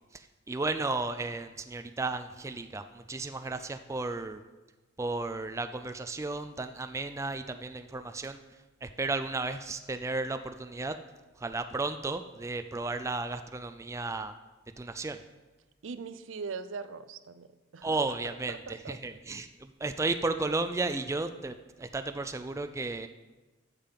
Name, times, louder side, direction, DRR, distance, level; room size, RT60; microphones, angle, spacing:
voice 1, 0.1-4.4 5.0-8.4 8.8-11.0 11.4-14.3 14.8-15.2 17.8-21.5 21.8-23.1, right 3 dB, 15° right, 9 dB, 0.3 m, -34 dB
voice 2, 15.8-19.2, right 5 dB, 85° right, 13 dB, 0.5 m, -42 dB
8.7 x 7.4 x 5.8 m, 1.2 s
head